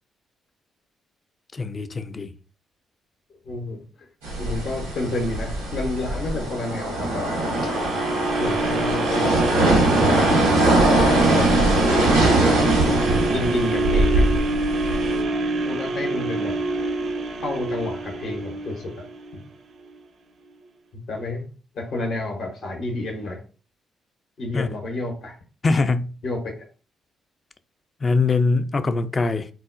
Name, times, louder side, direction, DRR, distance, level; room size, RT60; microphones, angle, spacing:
voice 1, 1.5-2.3 24.5-24.7 25.6-26.1 28.0-29.5, left 3 dB, 35° left, 0.4 m, -22 dB
voice 2, 3.5-3.8 4.4-7.3 7.6-7.7 8.4-10.7 11.8-12.5 13.3-14.3 15.7-16.6 17.4-19.0 19.3-19.4 21.1-21.4 21.7-23.4 24.4-25.4 26.2-26.4, left 2 dB, 60° left, 0.7 m, -30 dB
sound 1, 4.2-15.2, right 2 dB, 90° right, 0.9 m, -21 dB
sound 2, 7.3-19.4 19.9-20.0, right 2 dB, 60° right, 0.5 m, -26 dB
3.8 x 2.1 x 2.4 m
hypercardioid pair, 45°, 0 cm